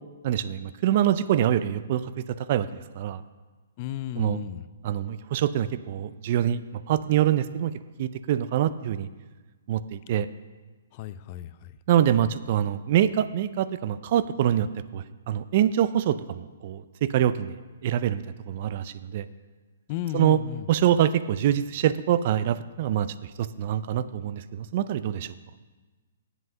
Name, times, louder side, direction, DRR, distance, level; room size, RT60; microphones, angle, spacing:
voice 1, 0.2-2.1 2.5-3.2 4.2-4.4 4.8-7.7 8.0-9.1 9.7-10.3 11.9-14.7 14.9-17.6 17.8-19.3 20.1-20.4 20.7-23.1 23.4-25.3, right 11 dB, 45° right, 15 dB, 0.4 m, -25 dB
voice 2, 3.8-4.7 10.1-10.2 10.9-11.8 19.9-20.7, left 12 dB, 35° left, 15 dB, 0.3 m, -34 dB
8.0 x 7.6 x 5.6 m, 1.3 s
hypercardioid pair, 150°, 0 cm